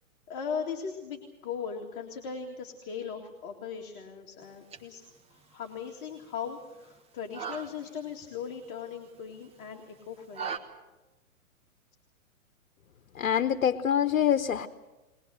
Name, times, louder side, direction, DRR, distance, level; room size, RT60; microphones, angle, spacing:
voice 1, 0.3-10.6, left 6 dB, 35° left, 1 dB, 2.3 m, -38 dB
sound 1, 4.4-10.6, right 6 dB, 15° right, 1.4 m, -44 dB
voice 2, 13.2-14.7, left 9 dB, 75° left, 10 dB, 1.0 m, -25 dB
21.5 x 21.0 x 7.8 m, 1.1 s
hypercardioid pair, 135°, 42 cm